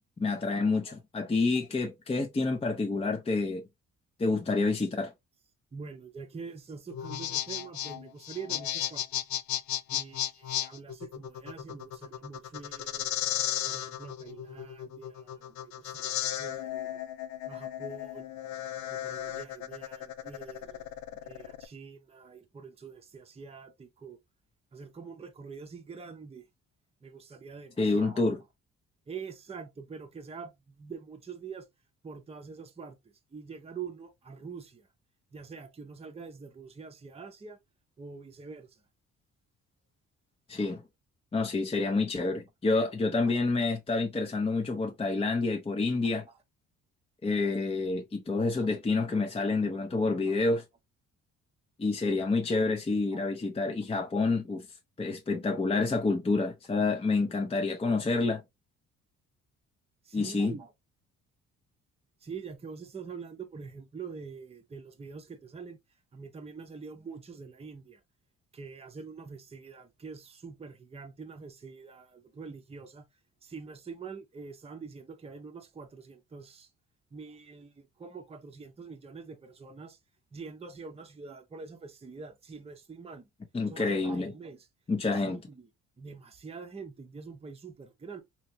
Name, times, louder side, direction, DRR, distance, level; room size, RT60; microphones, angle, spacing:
voice 1, 0.2-3.6 4.2-5.1 27.8-28.4 40.5-40.8 41.3-46.2 47.2-50.6 51.8-54.6 55.0-58.4 60.1-60.5 83.5-84.3 84.9-85.4, left 3 dB, 20° left, 0.6 m, -28 dB
voice 2, 5.7-9.0 9.9-13.1 13.6-17.0 17.4-18.3 18.9-20.9 21.2-24.2 24.7-26.4 27.0-28.2 29.1-31.6 32.0-33.0 33.3-34.9 35.3-37.6 38.0-38.8 53.1-53.2 60.1-60.7 62.2-65.8 66.1-68.0 68.5-73.0 73.4-76.7 77.1-80.0 80.3-83.2 83.7-84.7 85.2-85.7 86.0-88.2, right 5 dB, 20° right, 0.7 m, -45 dB
sound 1, 6.9-21.7, left 12 dB, 65° left, 0.5 m, -35 dB
3.3 x 2.9 x 2.7 m
cardioid pair, 90°, 30 cm